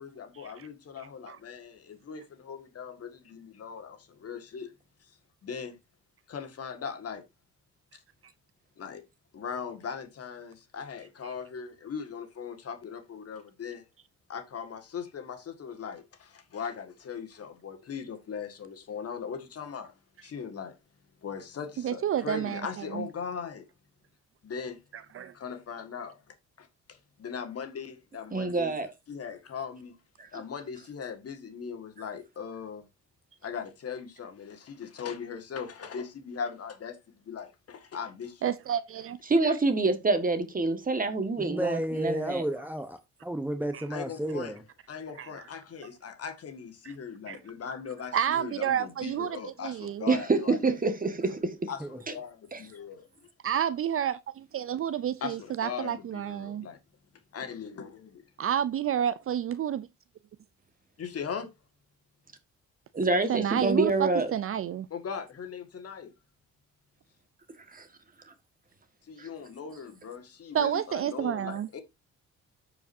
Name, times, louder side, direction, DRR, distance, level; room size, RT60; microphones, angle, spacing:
voice 1, 0.0-4.7 5.0-5.2 5.4-5.8 6.3-7.2 8.8-9.0 9.3-13.9 14.3-19.9 20.2-20.8 21.2-23.6 24.4-24.8 25.3-28.8 29.1-30.0 30.3-32.8 33.4-38.5 43.9-44.5 44.9-50.6 51.7-53.1 55.2-56.8 57.3-58.2 61.0-61.5 64.9-66.1 69.0-71.8, left 6 dB, 50° left, 1.7 m, -39 dB
voice 2, 21.8-22.6 22.9-23.1 25.1-25.3 38.4-39.2 43.7-43.8 45.2-45.3 47.3-47.4 48.1-50.1 53.4-56.7 58.4-59.9 63.3-64.9 70.5-71.7, right 9 dB, 45° right, 0.5 m, -30 dB
voice 3, 28.3-28.9 30.2-30.3 39.3-42.4 50.1-51.7 52.5-52.6 62.9-64.3 67.7-67.9 69.2-69.3, right 3 dB, 30° right, 1.6 m, -26 dB
voice 4, 41.4-44.6 51.8-52.0, right 1 dB, 5° right, 0.8 m, -32 dB
13.5 x 4.9 x 2.6 m
cardioid pair, 90°, 30 cm